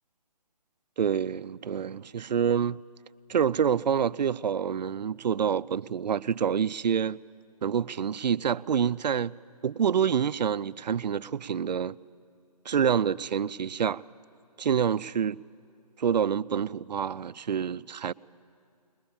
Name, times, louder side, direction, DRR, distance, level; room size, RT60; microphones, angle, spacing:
voice 1, 1.0-2.8 3.3-7.2 7.6-9.3 9.6-12.0 12.7-14.0 14.6-15.4 16.0-18.1, right 7 dB, 85° right, 0.4 m, -27 dB
22.0 x 21.0 x 7.1 m
hypercardioid pair, 180°, 21 cm